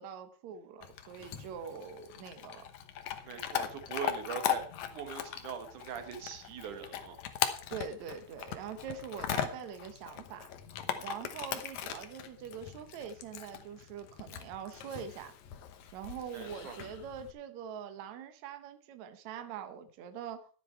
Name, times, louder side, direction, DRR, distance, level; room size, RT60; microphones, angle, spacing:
voice 1, 0.0-2.6 7.7-10.5 11.0-15.3 15.9-20.5, right 7 dB, 85° right, 9 dB, 1.6 m, -43 dB
Chewing mastication / Dog, 0.8-17.3, left 10 dB, 70° left, 1.7 m, -39 dB
voice 2, 3.2-4.6 4.9-7.2 16.3-16.8, right 7 dB, 60° right, 7 dB, 2.5 m, -41 dB
13.0 x 9.9 x 4.6 m, 0.41 s
omnidirectional pair, 4.8 m